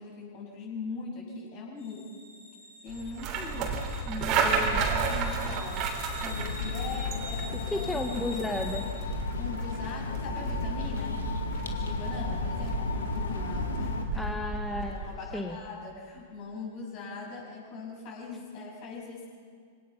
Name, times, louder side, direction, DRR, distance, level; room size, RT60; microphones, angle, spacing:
voice 1, 0.0-2.0 2.8-3.8 4.2-8.1 9.4-11.2 11.7-14.4 14.9-19.3, left 4 dB, 45° left, -2 dB, 7.1 m, -41 dB
sound 1, 1.8-8.8, left 1 dB, 90° left, 6.8 m, -46 dB
sound 2, 2.9-15.1, right 4 dB, 40° right, 3.2 m, -33 dB
voice 2, 4.1-4.8 7.5-8.8 14.1-15.0 15.3-15.6, left 2 dB, 5° left, 3 dB, 1.2 m, -33 dB
sound 3, 6.3-14.0, left 4 dB, 70° left, 2.0 m, -34 dB
26.0 x 17.5 x 5.7 m, 2.1 s
figure-of-eight pair, 100°, 0 cm